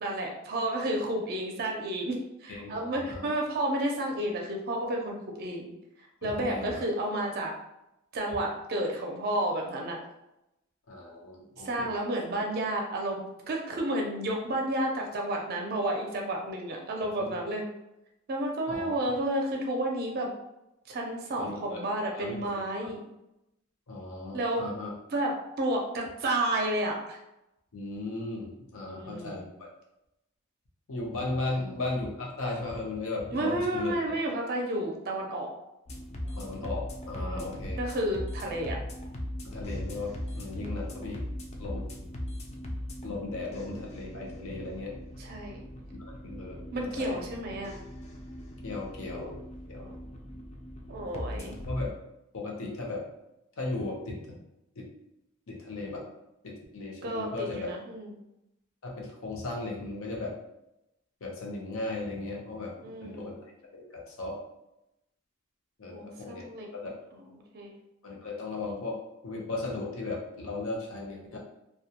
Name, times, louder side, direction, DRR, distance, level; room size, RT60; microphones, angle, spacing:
voice 1, 0.0-5.7 6.2-7.5 8.1-10.0 11.6-17.7 18.3-20.3 20.9-23.0 24.3-24.6 25.1-27.2 28.9-29.4 31.5-31.8 33.3-35.5 37.2-38.8 40.5-41.0 43.4-43.5 45.2-45.6 46.7-47.8 49.8-49.9 50.9-51.5 57.0-58.1 62.8-63.3 65.9-66.7 67.1-67.2 67.5-67.7, right 1 dB, 50° right, 1 dB, 0.4 m, -31 dB
voice 2, 2.5-3.3 6.2-6.8 10.9-11.9 17.2-17.3 18.7-18.9 21.4-21.8 22.2-22.6 23.9-24.9 27.7-29.7 30.9-33.9 36.3-37.8 39.4-41.2 41.6-42.1 43.0-45.0 46.2-47.2 48.6-49.8 51.3-51.9 52.3-53.0 53.6-54.2 54.8-54.9 55.5-56.0 56.4-57.7 58.8-60.3 61.2-62.7 63.0-63.4 63.7-64.4 65.8-66.5 66.7-66.9 68.0-69.0 69.2-71.4, left 2 dB, 80° left, -1 dB, 0.7 m, -36 dB
sound 1, 35.9-51.9, left 1 dB, 30° left, 0.3 m, -39 dB
2.2 x 2.1 x 2.8 m, 0.87 s
head